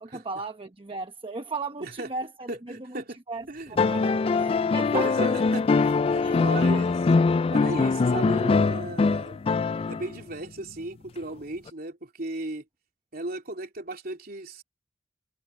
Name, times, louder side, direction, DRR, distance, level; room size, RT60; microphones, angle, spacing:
voice 1, 0.0-5.3 6.2-6.8 7.6-7.9, right 3 dB, 30° right, 1.0 m, -37 dB
voice 2, 2.5-3.2 3.5-3.8 4.0-4.2 4.5-7.0 7.5-9.4 9.9-12.6 13.1-14.6, right 2 dB, 55° right, 3.1 m, -36 dB
sound 1, 3.8-10.2 11.7-11.8, left 4 dB, 30° left, 0.3 m, -23 dB
head